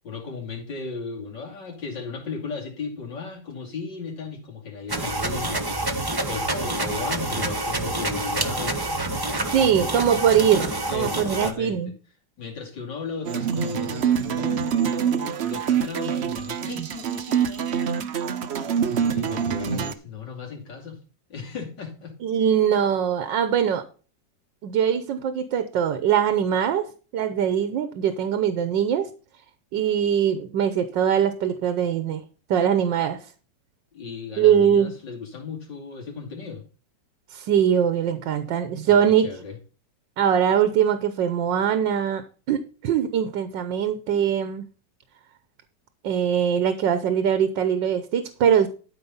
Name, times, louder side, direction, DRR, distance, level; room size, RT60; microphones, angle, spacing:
voice 1, 0.0-5.9 6.3-9.0 9.3-10.3 10.9-11.9 12.4-18.6 19.1-21.0 21.3-22.2 33.9-36.7 38.8-39.6, left 5 dB, 80° left, 3.3 m, -36 dB
sound 1, 4.9-11.5, right 2 dB, 15° right, 0.9 m, -27 dB
voice 2, 9.5-11.9 16.8-16.9 22.2-23.9 24.6-26.9 27.1-29.1 29.7-32.2 32.5-33.3 34.4-34.9 37.3-39.3 40.2-44.7 46.0-48.7, right 8 dB, 90° right, 1.6 m, -22 dB
sound 2, 13.2-19.9, right 8 dB, 55° right, 0.7 m, -25 dB
12.5 x 5.1 x 5.5 m
omnidirectional pair, 1.9 m